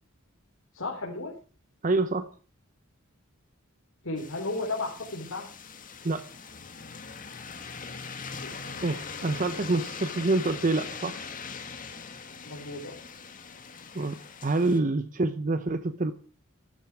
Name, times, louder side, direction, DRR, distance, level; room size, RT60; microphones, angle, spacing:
voice 1, 0.7-1.3 4.0-5.5 8.4-8.5 12.4-13.0, left 2 dB, 75° left, -2 dB, 3.8 m, -34 dB
voice 2, 1.8-2.3 6.0-6.3 8.8-11.2 13.9-16.1, right 2 dB, 40° right, 11 dB, 0.8 m, -27 dB
sound 1, 4.2-14.8, left 5 dB, 40° left, 1.9 m, -41 dB
14.0 x 13.0 x 6.1 m, 0.39 s
head